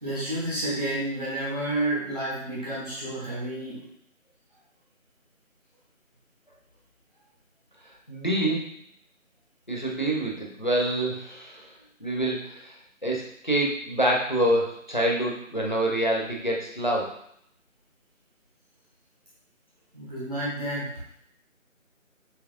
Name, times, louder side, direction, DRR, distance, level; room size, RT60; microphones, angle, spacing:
voice 1, 0.0-3.8 19.9-20.9, right 1 dB, 30° right, -8 dB, 1.2 m, -30 dB
voice 2, 8.1-8.7 9.7-11.7 12.0-12.7 13.0-17.1, right 1 dB, 35° left, -2 dB, 0.7 m, -26 dB
7.0 x 2.9 x 2.4 m, 0.72 s
figure-of-eight pair, 170°, 41 cm